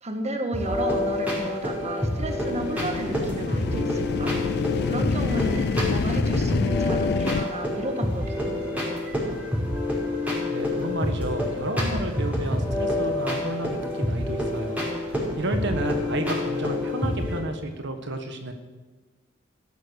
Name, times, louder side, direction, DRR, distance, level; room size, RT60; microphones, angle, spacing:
voice 1, 0.0-4.3 4.8-8.8, right 1 dB, 35° right, 5 dB, 1.5 m, -32 dB
sound 1, 0.5-17.4, left 1 dB, 10° right, 5.1 m, -27 dB
sound 2, 2.3-7.5, left 5 dB, 55° left, 0.4 m, -28 dB
voice 2, 10.5-18.5, right 1 dB, 65° right, 6 dB, 1.5 m, -31 dB
15.0 x 12.0 x 6.5 m, 1.3 s
head